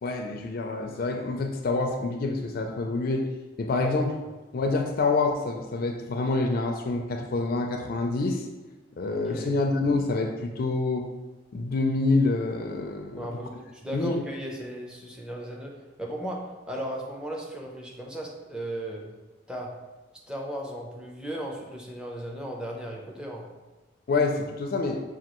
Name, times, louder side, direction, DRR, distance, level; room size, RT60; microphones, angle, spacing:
voice 1, 0.0-3.3 3.6-4.2 4.5-8.5 9.0-11.1 11.5-13.3 13.9-14.2 24.1-25.0, left 3 dB, 50° left, 3 dB, 0.3 m, -27 dB
voice 2, 13.2-15.7 16.0-19.0 19.5-19.7 20.3-23.4, right 1 dB, 5° right, -1 dB, 0.5 m, -36 dB
6.1 x 2.4 x 2.9 m, 1.1 s
head